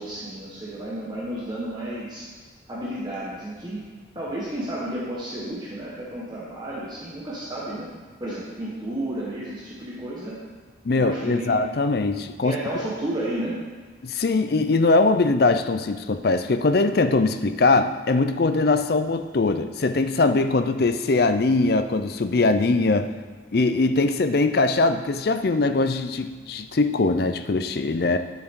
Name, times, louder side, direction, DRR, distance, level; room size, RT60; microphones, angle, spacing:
voice 1, 0.0-2.3 2.7-3.9 4.1-7.9 8.2-10.4 10.9-11.6 12.4-13.6, right 1 dB, 20° right, -7 dB, 1.4 m, -32 dB
voice 2, 10.8-12.6 14.0-23.1 23.5-28.2, left 3 dB, 55° left, 9 dB, 0.5 m, -21 dB
10.5 x 7.3 x 3.8 m, 1.4 s
head